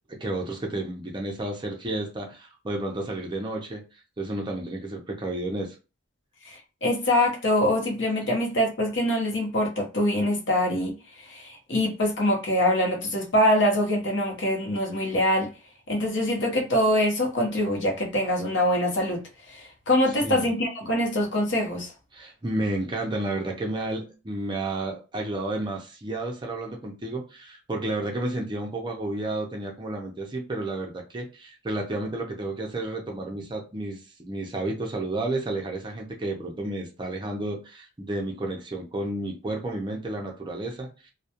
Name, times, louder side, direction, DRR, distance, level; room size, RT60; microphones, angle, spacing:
voice 1, 0.1-3.8 4.2-5.7 20.2-20.5 22.1-41.1, right 2 dB, 25° right, 0.5 m, -31 dB
voice 2, 6.4-10.9 11.3-15.5 15.9-19.2 19.5-21.9, left 1 dB, 60° left, 0.7 m, -24 dB
2.2 x 2.1 x 2.7 m
head